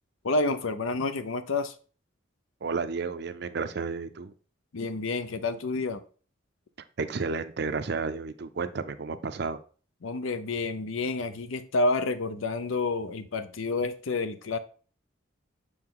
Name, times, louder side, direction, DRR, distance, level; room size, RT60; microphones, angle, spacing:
voice 1, 0.2-1.7 4.7-6.0 10.0-14.6, left 3 dB, 75° left, 0.6 m, -29 dB
voice 2, 2.6-4.3 7.0-9.6, right 4 dB, 50° right, 0.5 m, -32 dB
6.4 x 4.7 x 3.7 m
head